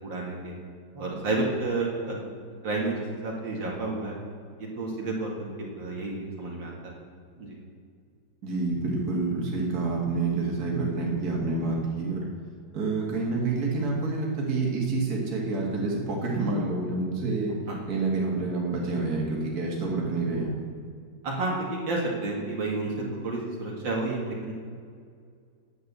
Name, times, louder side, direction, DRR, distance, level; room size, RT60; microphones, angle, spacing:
voice 1, 0.0-0.6 0.9-2.2 2.6-4.2 4.8-7.0 7.4-7.6 17.7-17.8 21.2-24.5, right 2 dB, 75° right, -2 dB, 2.6 m, -30 dB
voice 2, 8.4-12.2 12.7-17.5 17.9-20.5, right 3 dB, 55° right, -2 dB, 2.5 m, -28 dB
9.7 x 7.9 x 8.1 m, 2.2 s
omnidirectional pair, 2.0 m